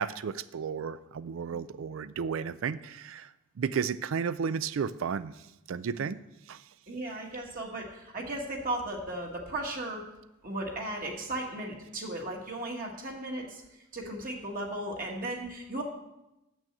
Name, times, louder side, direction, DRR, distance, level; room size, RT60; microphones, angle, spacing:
voice 1, 0.0-3.3 3.6-5.3 5.7-6.2 6.5-6.6, right 6 dB, 65° right, 15 dB, 0.4 m, -33 dB
voice 2, 6.9-10.0 10.4-13.6 13.9-15.8, right 1 dB, 40° right, -1 dB, 1.3 m, -36 dB
7.0 x 6.2 x 7.6 m, 0.92 s
head